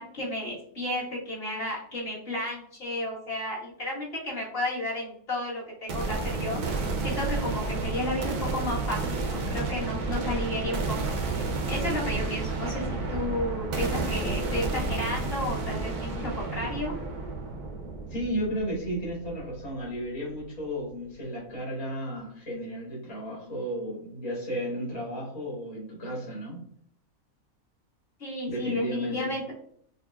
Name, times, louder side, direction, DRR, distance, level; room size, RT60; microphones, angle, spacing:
voice 1, 0.0-11.2 11.7-12.8 13.1-17.0 28.2-29.4, left 1 dB, 45° left, -6 dB, 1.5 m, -32 dB
sound 1, 5.9-19.8, right 3 dB, 85° right, 1.2 m, -31 dB
voice 2, 18.1-26.6 28.5-29.3, equal, 70° left, -5 dB, 2.2 m, -33 dB
5.7 x 2.1 x 2.2 m, 0.63 s
omnidirectional pair, 1.6 m